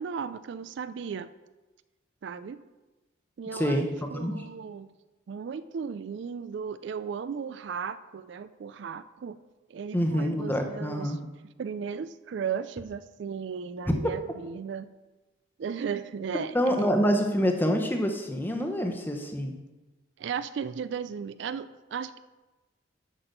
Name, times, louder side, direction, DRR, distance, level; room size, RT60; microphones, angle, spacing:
voice 1, 0.0-1.3 2.2-2.6 3.4-4.9 5.3-9.4 9.7-11.3 11.6-14.9 15.6-16.9 20.2-22.2, right 6 dB, 60° right, 14 dB, 0.3 m, -36 dB
voice 2, 3.5-3.9 4.1-4.5 9.9-11.2 16.5-19.5, equal, 10° left, 4 dB, 0.8 m, -26 dB
8.1 x 5.9 x 6.6 m, 1.2 s
head